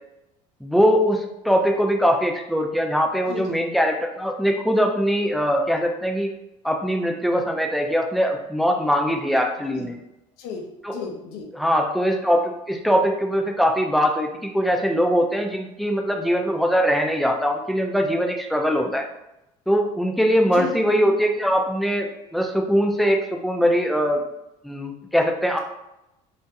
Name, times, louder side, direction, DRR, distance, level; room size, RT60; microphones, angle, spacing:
voice 1, 0.6-6.3 6.6-9.9 10.8-11.0 11.6-19.1 19.7-24.2 24.6-25.6, equal, ahead, 2 dB, 0.4 m, -21 dB
voice 2, 3.3-3.6 9.7-9.9 10.4-11.5 20.5-20.7, left 5 dB, 80° left, 2 dB, 0.5 m, -34 dB
2.4 x 2.1 x 2.7 m, 0.89 s
supercardioid pair, 80°, 16 cm